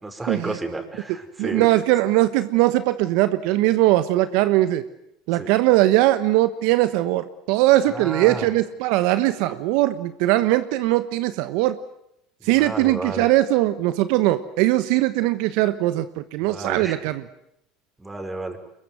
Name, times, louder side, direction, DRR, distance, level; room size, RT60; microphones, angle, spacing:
voice 1, 0.0-1.7 5.3-5.5 7.8-8.5 12.4-13.3 16.4-17.0 18.0-18.6, right 2 dB, 15° right, 7 dB, 5.1 m, -32 dB
voice 2, 1.4-4.8 5.3-11.8 12.4-17.2, right 16 dB, 70° right, 13 dB, 1.1 m, -20 dB
23.5 x 22.0 x 9.2 m, 0.78 s
hypercardioid pair, 85°, 0 cm